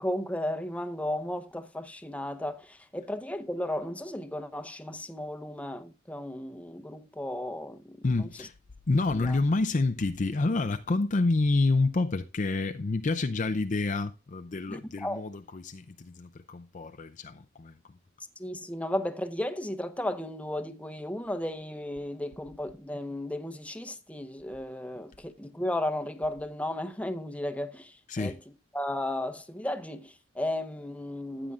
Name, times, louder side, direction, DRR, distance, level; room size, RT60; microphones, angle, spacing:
voice 1, 0.0-8.5 9.1-9.4 14.7-15.2 18.4-28.4 28.7-31.5, left 1 dB, 5° left, 0.8 m, -34 dB
voice 2, 8.0-8.5 8.9-17.7 28.1-28.4, left 3 dB, 35° left, 0.5 m, -28 dB
15.0 x 8.9 x 2.4 m
head